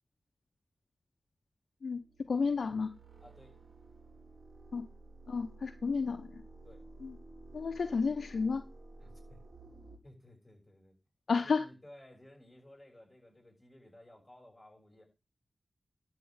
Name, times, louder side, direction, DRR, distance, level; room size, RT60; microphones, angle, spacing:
sound 1, 1.9-10.0, right 2 dB, 60° right, 2.1 m, -53 dB
voice 1, 2.3-2.9 4.7-4.9 5.3-6.4 7.0-7.1 7.5-8.6 11.3-11.6, left 4 dB, 75° left, 8 dB, 0.7 m, -31 dB
voice 2, 3.2-3.5 6.6-6.8 9.0-9.4 10.0-10.9 11.4-15.0, left 1 dB, 20° left, 0 dB, 6.7 m, -57 dB
12.0 x 4.2 x 7.9 m, 0.29 s
cardioid pair, 50°, 0 cm